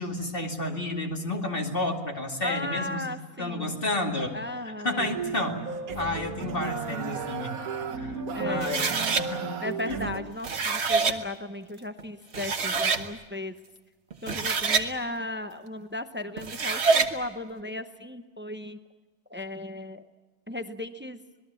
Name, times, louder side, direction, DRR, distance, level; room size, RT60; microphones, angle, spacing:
voice 1, 0.0-3.0 3.4-4.4 4.6-5.6 5.9-7.6 7.9-9.4 9.9-10.0, left 2 dB, 35° left, 2 dB, 2.6 m, -31 dB
voice 2, 2.4-3.8 4.3-5.1 8.3-8.7 9.6-13.5 14.2-18.8 19.3-20.0 20.5-21.2, left 2 dB, 10° right, 9 dB, 0.5 m, -36 dB
sound 1, 5.0-10.2, right 5 dB, 65° right, 1.6 m, -34 dB
sound 2, 8.6-9.2 10.3-11.2 12.0-12.1 12.3-13.0 14.1-14.9 16.4-17.1, right 4 dB, 45° right, 1.5 m, -25 dB
26.5 x 20.5 x 7.1 m, 1.3 s
omnidirectional pair, 1.6 m